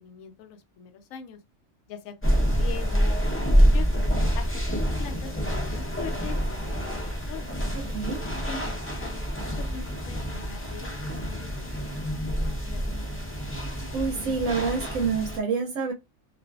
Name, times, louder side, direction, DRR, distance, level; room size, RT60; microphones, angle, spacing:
voice 1, 0.0-1.4 1.9-3.9 4.3-7.5 8.5-8.6 9.0-12.2 12.6-13.5, left 8 dB, 85° left, 1.0 m, -42 dB
sound 1, 2.2-15.4, equal, 15° left, 0.4 m, -27 dB
voice 2, 7.7-8.3 13.9-15.9, right 5 dB, 85° right, 1.0 m, -27 dB
2.5 x 2.4 x 2.3 m
omnidirectional pair, 1.4 m